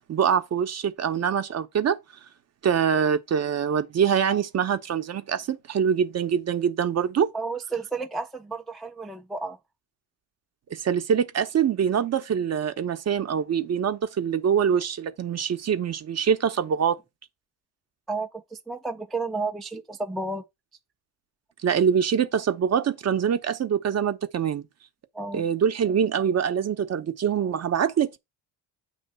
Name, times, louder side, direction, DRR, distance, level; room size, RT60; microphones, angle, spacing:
voice 1, 0.1-2.0 2.6-7.3 10.7-17.0 21.6-24.7 25.3-28.2, right 8 dB, 35° right, 0.8 m, -24 dB
voice 2, 7.3-9.6 18.1-20.4 25.1-25.5, right 3 dB, ahead, 0.4 m, -32 dB
7.9 x 3.2 x 5.3 m
supercardioid pair, 95°, 44 cm